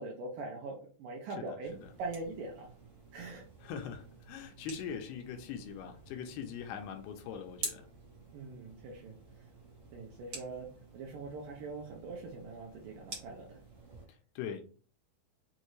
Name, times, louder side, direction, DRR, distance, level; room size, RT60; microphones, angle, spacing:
voice 1, 0.0-1.7 2.0-2.7 3.1-3.4 8.3-9.5 9.9-13.6, right 3 dB, 75° right, 2.0 m, -42 dB
voice 2, 1.4-1.9 3.6-7.9 14.1-14.6, left 7 dB, 80° left, 2.4 m, -42 dB
sound 1, 1.7-14.1, right 3 dB, 60° right, 1.3 m, -49 dB
6.4 x 2.5 x 3.1 m
omnidirectional pair, 4.7 m